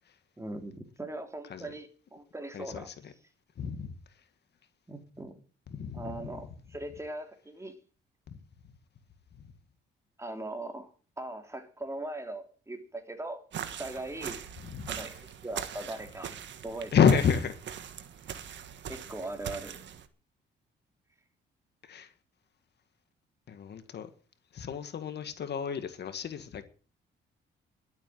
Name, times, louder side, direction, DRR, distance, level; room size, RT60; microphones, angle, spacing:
voice 1, 0.4-3.1 4.9-5.3 5.9-7.7 10.2-10.9 11.2-13.4 13.8-14.4 14.9-17.2 18.9-19.8, right 2 dB, 15° right, 3.2 m, -40 dB
voice 2, 2.5-2.8 3.6-3.9 5.7-6.1 14.6-14.9 16.9-17.5 21.9-22.1 23.5-24.1 24.5-26.6, left 7 dB, 60° left, 1.8 m, -29 dB
sound 1, 13.5-20.1, right 9 dB, 65° right, 1.7 m, -41 dB
12.0 x 8.2 x 9.4 m
cardioid pair, 90°, 20 cm